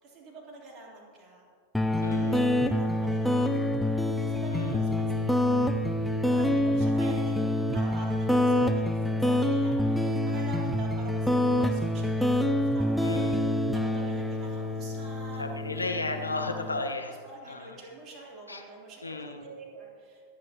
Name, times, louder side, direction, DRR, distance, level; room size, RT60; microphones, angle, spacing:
voice 1, 0.0-1.5 1.9-13.4 13.7-15.4 16.5-20.3, right 2 dB, 30° right, -3 dB, 3.6 m, -46 dB
sound 1, 1.7-16.8, left 1 dB, 5° left, 0.6 m, -26 dB
voice 2, 2.0-2.5 4.5-4.8 13.0-13.6 15.4-17.1 17.5-17.8 18.5-18.6 19.0-19.5, left 3 dB, 80° left, 5 dB, 1.2 m, -34 dB
26.0 x 9.5 x 3.0 m, 2.1 s
figure-of-eight pair, 90°, 0 cm